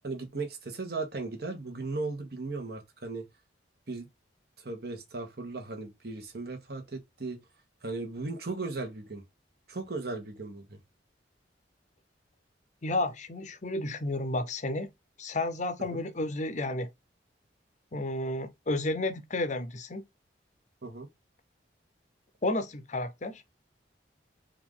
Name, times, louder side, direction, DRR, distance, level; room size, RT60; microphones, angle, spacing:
voice 1, 0.0-3.2 3.9-4.1 4.6-7.4 7.8-9.2 9.7-10.8 15.9-16.0 20.8-21.1, right 3 dB, 55° right, 1.2 m, -37 dB
voice 2, 12.8-14.9 15.2-16.9 17.9-20.0 22.4-23.4, left 2 dB, 40° left, 0.6 m, -31 dB
4.4 x 2.6 x 3.6 m
head